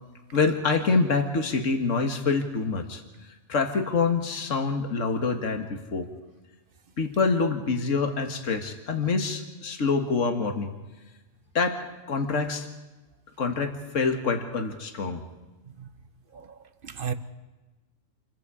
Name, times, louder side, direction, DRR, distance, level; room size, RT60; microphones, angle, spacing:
voice 1, 0.3-3.0 3.5-6.1 7.0-10.7 11.5-11.8 12.1-12.7 13.4-15.2, left 4 dB, 75° left, 2.0 m, -26 dB
voice 2, 16.3-17.1, right 7 dB, 45° right, 1.3 m, -35 dB
28.0 x 22.0 x 5.0 m
omnidirectional pair, 1.3 m